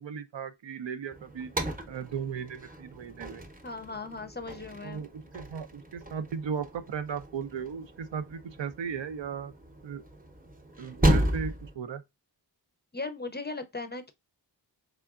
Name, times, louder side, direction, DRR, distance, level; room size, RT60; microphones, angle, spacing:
voice 1, 0.0-1.5 1.9-3.5 4.8-9.5 9.8-10.0 10.8-12.0, right 7 dB, 85° right, 0.6 m, -36 dB
sound 1, 1.1-11.7, right 1 dB, 20° right, 0.7 m, -33 dB
voice 2, 3.6-5.0 12.9-14.1, left 3 dB, 25° left, 0.4 m, -37 dB
3.7 x 3.4 x 2.4 m
wide cardioid pair, 55°, 44 cm